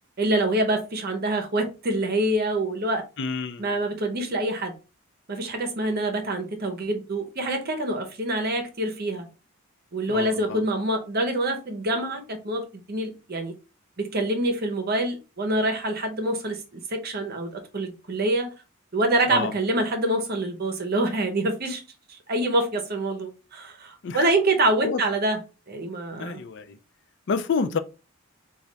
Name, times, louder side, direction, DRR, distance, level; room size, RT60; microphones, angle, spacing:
voice 1, 0.2-3.0 3.6-4.7 5.3-9.3 9.9-13.5 14.0-18.5 18.9-21.8 22.3-25.4 25.7-26.4, right 1 dB, 45° right, 0.8 m, -26 dB
voice 2, 3.2-3.7 10.1-10.6 19.3-19.5 24.0-24.3 24.8-25.0 26.1-26.8 27.3-27.8, left 5 dB, 55° left, 0.4 m, -28 dB
3.2 x 2.3 x 3.9 m
head